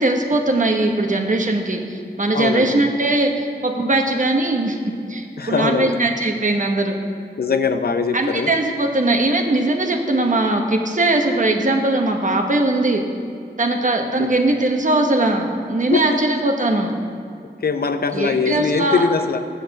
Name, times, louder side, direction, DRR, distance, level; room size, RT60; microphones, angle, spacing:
voice 1, 0.0-4.8 5.1-7.0 8.1-13.0 13.6-16.9 18.1-19.0, right 2 dB, 50° right, 3 dB, 1.1 m, -20 dB
voice 2, 2.3-2.8 5.4-6.0 7.4-8.5 14.2-14.3 15.9-16.2 17.6-19.4, left 5 dB, 65° left, 9 dB, 0.6 m, -21 dB
7.8 x 6.5 x 7.6 m, 2.4 s
wide cardioid pair, 60°, 17 cm